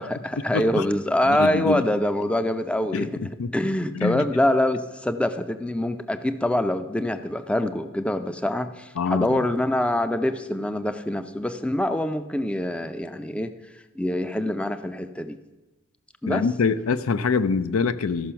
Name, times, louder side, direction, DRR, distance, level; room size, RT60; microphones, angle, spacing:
voice 1, 0.0-13.5 14.0-15.4 16.2-16.5, left 1 dB, 5° left, 10 dB, 0.4 m, -25 dB
voice 2, 0.5-0.8 1.2-1.8 2.9-3.5 3.9-4.2 9.0-9.4 16.3-18.3, left 5 dB, 85° left, 13 dB, 0.5 m, -25 dB
14.0 x 6.1 x 5.7 m, 1.1 s
head